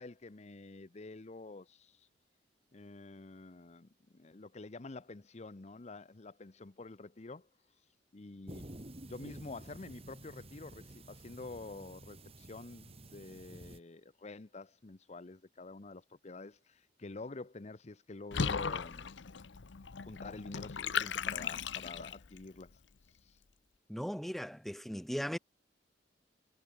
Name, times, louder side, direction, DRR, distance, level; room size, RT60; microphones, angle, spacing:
voice 1, 0.0-2.1 2.7-7.5 8.1-8.7 9.0-19.1 20.0-22.8 23.2-23.4, left 3 dB, 40° left, 0.7 m, -48 dB
sound 1, 8.5-13.8, right 1 dB, 35° right, 3.5 m, -51 dB
Water / Bathtub (filling or washing), 18.3-22.4, left 6 dB, 85° left, 0.8 m, -37 dB
voice 2, 23.9-25.4, equal, ahead, 0.5 m, -38 dB
head